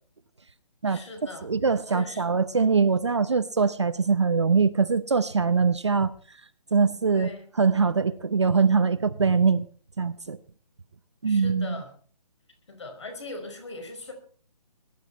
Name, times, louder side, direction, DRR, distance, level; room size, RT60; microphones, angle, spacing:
voice 1, 0.8-1.5 1.9-2.4 7.1-7.5 11.2-11.9 12.7-14.1, left 2 dB, 45° left, 6 dB, 4.7 m, -40 dB
voice 2, 1.4-6.1 6.7-7.3 7.6-9.6 10.0-10.4 11.2-11.8, right 5 dB, 40° right, 13 dB, 0.6 m, -22 dB
20.0 x 11.5 x 4.4 m, 0.43 s
hypercardioid pair, 180°, 21 cm